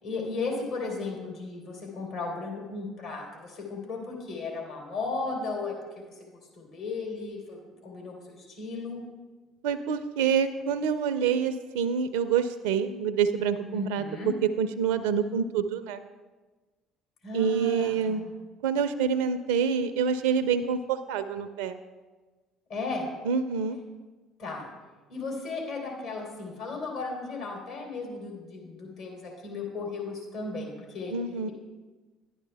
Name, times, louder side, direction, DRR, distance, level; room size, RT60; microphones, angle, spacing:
voice 1, 0.0-5.7 6.0-6.2 6.6-9.0 13.7-14.3 17.2-18.3 22.7-23.1 24.4-24.7 25.1-31.1, left 3 dB, 65° left, -2 dB, 3.3 m, -35 dB
voice 2, 9.6-14.1 14.6-16.0 17.3-18.2 18.6-21.8 23.3-23.8 31.1-31.5, right 7 dB, 80° right, 9 dB, 0.4 m, -27 dB
11.5 x 10.0 x 3.4 m, 1.3 s
hypercardioid pair, 60°, 0 cm